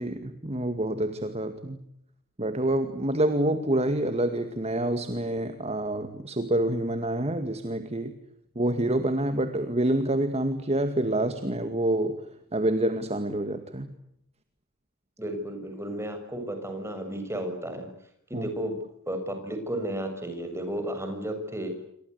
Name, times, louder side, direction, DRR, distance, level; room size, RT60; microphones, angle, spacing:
voice 1, 0.0-1.8 2.4-8.1 8.6-12.2 12.5-13.9 18.3-18.5, right 1 dB, 30° right, 9 dB, 2.1 m, -27 dB
voice 2, 15.2-17.9 18.3-18.7 19.1-21.7, right 1 dB, 10° right, 6 dB, 6.8 m, -33 dB
28.5 x 25.0 x 8.3 m, 0.75 s
head